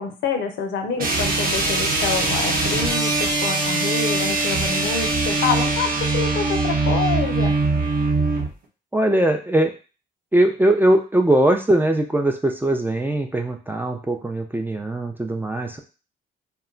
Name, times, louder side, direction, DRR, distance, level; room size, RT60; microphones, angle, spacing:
voice 1, 0.0-7.6, left 5 dB, 70° left, 5 dB, 0.6 m, -27 dB
sound 1, 1.0-8.5, right 3 dB, 45° right, 0.8 m, -22 dB
voice 2, 8.9-9.7 10.3-15.8, right 1 dB, 10° right, 3 dB, 0.4 m, -20 dB
2.2 x 2.1 x 3.7 m, 0.34 s
cardioid pair, 90°, 20 cm